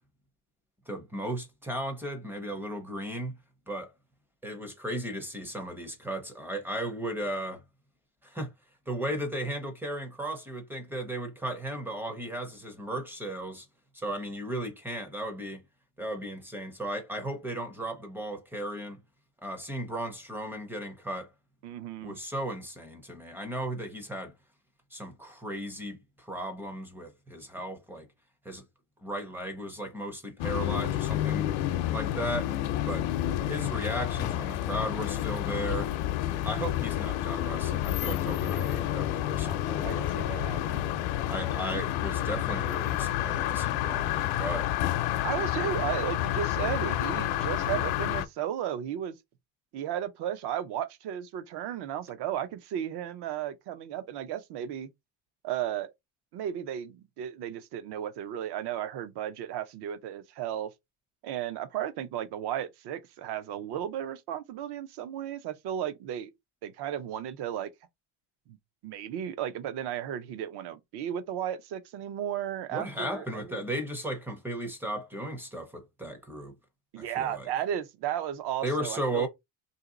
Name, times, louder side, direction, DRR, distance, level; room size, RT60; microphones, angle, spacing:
voice 1, 0.9-3.4 3.7-3.9 4.4-7.6 8.2-8.5 8.9-13.7 13.9-15.6 16.0-19.0 19.4-21.3 22.0-24.3 24.9-28.1 28.4-28.6 29.0-31.5 31.9-32.5 32.8-33.1 33.4-35.9 36.4-40.1 41.3-44.7 72.7-76.5 77.0-77.5 78.6-79.3, right 1 dB, 5° right, 0.5 m, -35 dB
voice 2, 21.6-22.2 39.8-40.9 45.2-49.1 49.7-54.9 55.4-55.9 56.3-60.7 61.2-66.3 66.6-67.7 68.5-68.6 68.8-73.6 76.9-79.3, right 10 dB, 55° right, 0.6 m, -34 dB
sound 1, 30.4-48.2, left 13 dB, 75° left, 0.7 m, -29 dB
2.9 x 2.8 x 3.8 m
cardioid pair, 165°, 48 cm